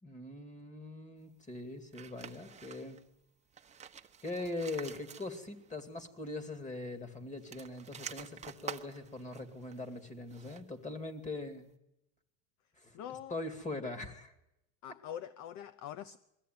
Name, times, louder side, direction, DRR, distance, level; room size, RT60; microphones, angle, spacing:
voice 1, 0.0-3.0 4.2-11.7 12.8-14.3, left 2 dB, 20° left, 2.5 m, -42 dB
sound 1, 1.9-3.1 3.5-5.7 6.0-6.1 7.3-10.8, right 7 dB, 15° right, 1.0 m, -48 dB
voice 2, 12.9-13.4 14.8-16.2, left 10 dB, 45° left, 0.8 m, -44 dB
22.0 x 14.5 x 9.4 m
supercardioid pair, 125°, 40 cm